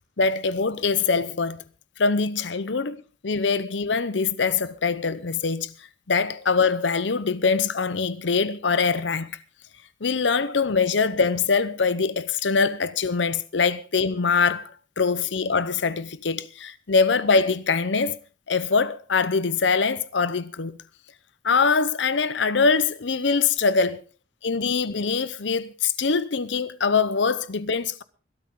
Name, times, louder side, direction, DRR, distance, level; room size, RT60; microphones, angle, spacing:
voice 1, 0.2-1.6 2.0-5.7 6.1-9.3 10.0-18.2 18.5-20.8 21.4-24.0 24.4-28.0, left 5 dB, 75° left, 0.8 m, -23 dB
21.5 x 12.5 x 3.8 m
head